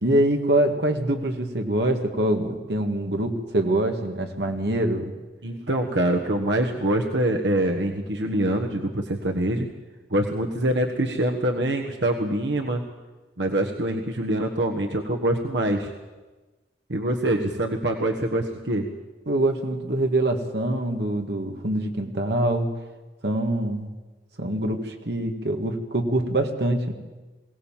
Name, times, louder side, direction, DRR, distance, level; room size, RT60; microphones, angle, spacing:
voice 1, 0.0-5.1 19.3-22.7 23.2-23.9 24.4-26.9, right 1 dB, 70° right, 4 dB, 2.0 m, -24 dB
voice 2, 5.4-9.7 10.1-12.8 13.4-15.9 16.9-18.9, right 1 dB, 90° right, 3 dB, 1.4 m, -24 dB
21.5 x 17.5 x 7.4 m, 1.2 s
head